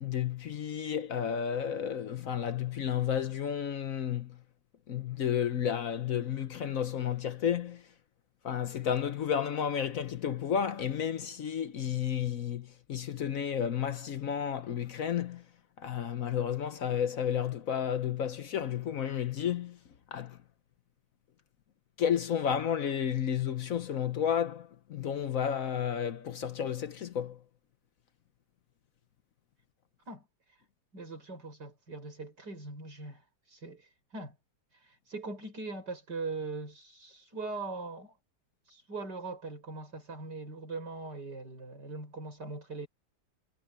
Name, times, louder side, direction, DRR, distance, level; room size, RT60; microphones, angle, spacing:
voice 1, 0.0-4.4 4.9-7.8 8.4-15.4 15.8-19.8 20.1-20.4 22.0-27.4, left 8 dB, 60° left, 1.1 m, -32 dB
voice 2, 30.9-34.4 34.8-38.2 38.7-42.9, right 3 dB, 75° right, 7.2 m, -41 dB
omnidirectional pair, 1.8 m